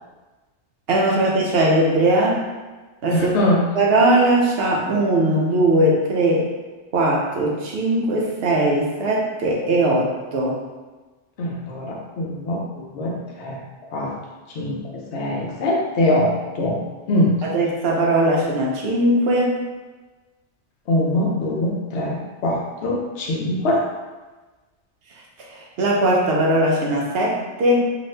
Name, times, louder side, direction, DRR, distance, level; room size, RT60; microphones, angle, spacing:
voice 1, 0.9-2.4 3.0-3.3 3.8-6.5 6.9-10.6 17.4-19.6 25.5-27.9, right 1 dB, 65° right, -2 dB, 0.7 m, -19 dB
voice 2, 3.1-3.6 11.4-12.6 12.9-13.6 13.9-14.1 14.5-16.8 17.1-17.3 20.9-23.8, left 1 dB, 75° left, -2 dB, 0.9 m, -22 dB
2.6 x 2.4 x 3.2 m, 1.2 s
omnidirectional pair, 1.2 m